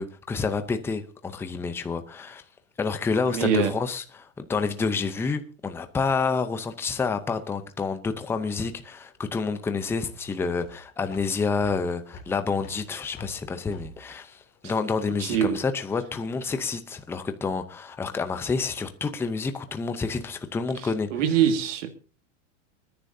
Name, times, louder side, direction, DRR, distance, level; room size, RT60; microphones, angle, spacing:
voice 1, 0.0-2.4 2.8-21.1, left 4 dB, 5° left, 0.6 m, -29 dB
voice 2, 3.3-3.7 15.2-15.6 21.1-21.9, right 9 dB, 70° right, 2.0 m, -23 dB
sound 1, 8.7-15.2, left 1 dB, 25° left, 2.7 m, -47 dB
29.5 x 10.0 x 2.7 m
supercardioid pair, 155°, 38 cm